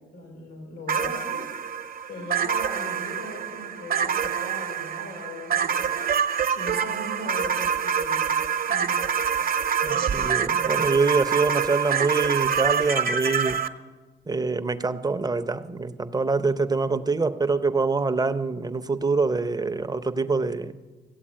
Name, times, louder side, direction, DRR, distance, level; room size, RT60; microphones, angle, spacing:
voice 1, 0.1-1.4 2.0-5.9 6.5-8.3 8.7-8.9, left 1 dB, 90° left, -1 dB, 4.4 m, -39 dB
sound 1, 0.9-13.7, right 7 dB, 50° right, 0.9 m, -26 dB
voice 2, 9.8-13.6 14.3-20.8, right 4 dB, 20° right, 10 dB, 0.7 m, -25 dB
16.0 x 8.1 x 8.7 m, 1.3 s
cardioid pair, 90°, 20 cm